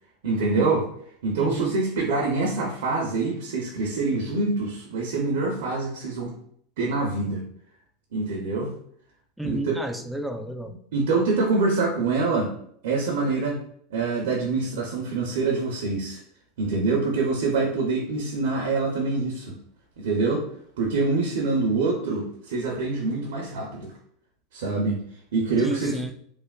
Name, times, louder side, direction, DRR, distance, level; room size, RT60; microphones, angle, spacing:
voice 1, 0.2-0.9 1.2-6.3 6.8-7.5 8.1-8.7 9.4-9.8 10.9-12.5 12.8-13.6 13.9-16.2 16.6-19.6 20.0-20.5 20.8-23.9 24.5-25.0 25.3-26.0, right 3 dB, 75° right, -2 dB, 0.6 m, -25 dB
voice 2, 1.4-1.8 9.4-10.8 25.6-26.1, right 1 dB, ahead, 6 dB, 0.3 m, -32 dB
3.2 x 2.0 x 2.3 m, 0.65 s
hypercardioid pair, 110°, 0 cm